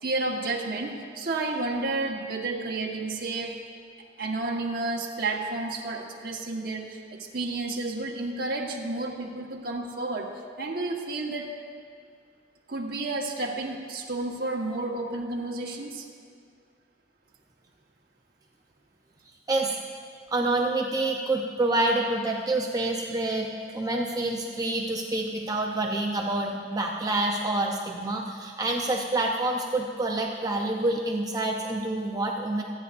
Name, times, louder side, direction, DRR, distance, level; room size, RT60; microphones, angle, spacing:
voice 1, 0.0-3.6 4.2-11.5 12.7-16.1, right 2 dB, 55° right, -1 dB, 1.4 m, -31 dB
voice 2, 20.3-32.6, right 2 dB, 20° right, 0 dB, 0.7 m, -27 dB
26.0 x 9.4 x 2.6 m, 2.2 s
head